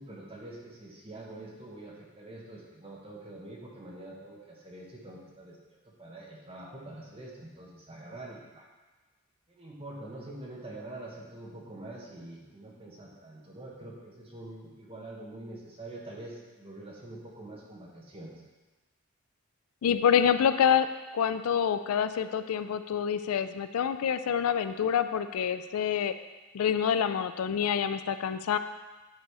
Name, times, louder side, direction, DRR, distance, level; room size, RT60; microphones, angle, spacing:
voice 1, 0.0-5.6 5.8-8.7 9.5-18.4, right 2 dB, 25° right, -3 dB, 1.3 m, -45 dB
voice 2, 19.8-20.9 21.1-26.1 26.5-28.6, left 8 dB, 80° left, 11 dB, 0.4 m, -27 dB
9.6 x 4.1 x 4.8 m, 1.2 s
head